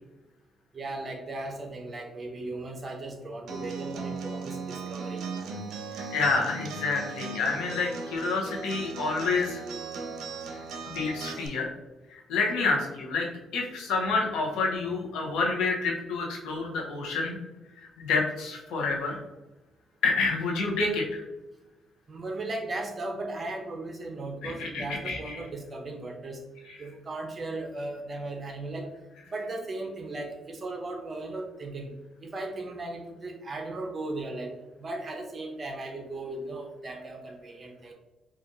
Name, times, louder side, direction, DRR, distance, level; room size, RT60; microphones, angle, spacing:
voice 1, 0.7-5.3 22.1-26.4 26.8-28.9 29.2-31.9 32.2-34.5 34.8-37.9, right 2 dB, 35° right, 2 dB, 0.9 m, -37 dB
Acoustic guitar, 3.5-11.5, right 4 dB, 80° right, 0.6 m, -37 dB
voice 2, 6.1-9.6 10.8-11.7 12.1-13.3 13.5-17.3 17.8-19.2 20.0-21.2 24.4-25.2, left 4 dB, 90° left, -1 dB, 1.0 m, -28 dB
5.0 x 2.5 x 2.7 m, 1.0 s
cardioid pair, 90°, 0 cm